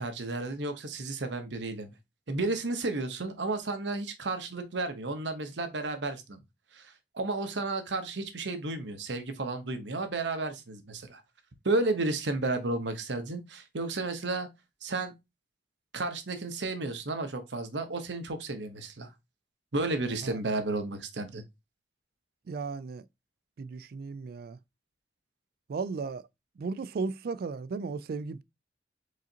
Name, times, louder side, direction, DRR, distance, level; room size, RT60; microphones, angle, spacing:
voice 1, 0.0-1.9 2.3-6.4 6.7-11.2 11.6-14.5 14.8-15.1 15.9-19.1 19.7-21.4, right 2 dB, 90° right, 1.0 m, -32 dB
voice 2, 22.5-23.1 23.6-24.6 25.7-26.3 26.6-28.4, right 4 dB, 55° right, 0.3 m, -35 dB
4.9 x 3.8 x 2.8 m
head